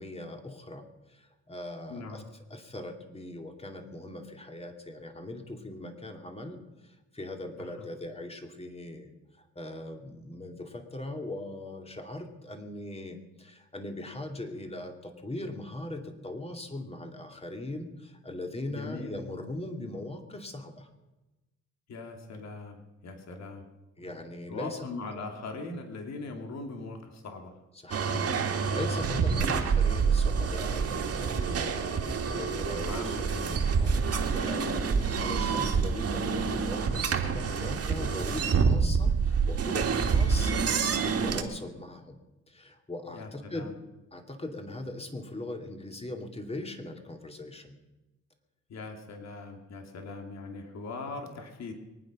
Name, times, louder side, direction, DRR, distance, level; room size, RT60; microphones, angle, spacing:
voice 1, 0.0-2.2 2.5-9.1 9.4-20.9 24.0-24.8 25.1-25.2 27.8-40.6 41.0-42.2 42.5-43.7 44.1-47.8, left 1 dB, 20° left, 5 dB, 2.6 m, -40 dB
voice 2, 1.9-2.3 7.6-7.9 18.7-19.1 21.9-23.7 24.5-27.6 32.8-33.9 43.1-43.7 48.7-51.7, left 3 dB, 60° left, 4 dB, 2.6 m, -40 dB
sound 1, 27.9-41.4, right 5 dB, 50° right, 2.2 m, -27 dB
23.5 x 9.5 x 6.2 m, 1.1 s
cardioid pair, 90°, 30 cm